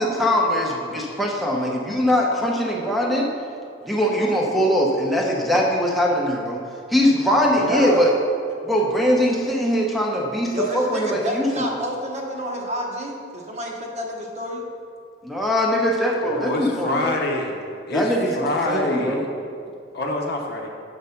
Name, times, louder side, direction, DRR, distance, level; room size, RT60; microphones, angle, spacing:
voice 1, 0.0-3.3 3.8-6.6 6.9-8.1 8.6-11.6 15.2-17.1 17.9-18.4 18.7-19.3, equal, ahead, -2 dB, 0.8 m, -21 dB
voice 2, 7.5-8.0 10.5-14.6, equal, 35° right, -1 dB, 0.9 m, -28 dB
voice 3, 16.2-17.5 17.9-19.5 19.9-20.7, left 2 dB, 55° left, 1 dB, 0.8 m, -26 dB
6.5 x 4.7 x 5.6 m, 2.3 s
head